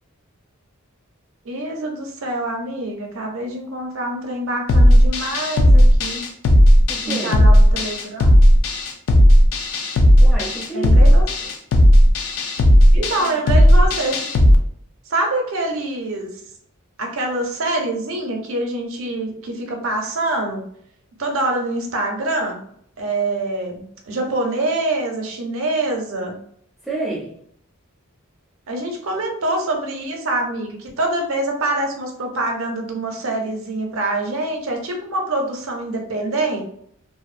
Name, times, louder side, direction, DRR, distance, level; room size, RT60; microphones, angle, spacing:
voice 1, 1.4-6.3 7.0-8.3 10.7-11.5 12.9-14.2 15.1-16.3 17.0-20.6 21.2-22.6 23.0-26.4 28.7-36.6, right 2 dB, 70° right, 2 dB, 0.6 m, -25 dB
sound 1, 4.7-14.6, equal, 75° left, 0.4 m, -13 dB
voice 2, 6.9-7.4 10.2-11.1 13.0-13.6 26.8-27.4, right 2 dB, ahead, -6 dB, 0.4 m, -30 dB
2.5 x 2.0 x 2.4 m, 0.67 s
head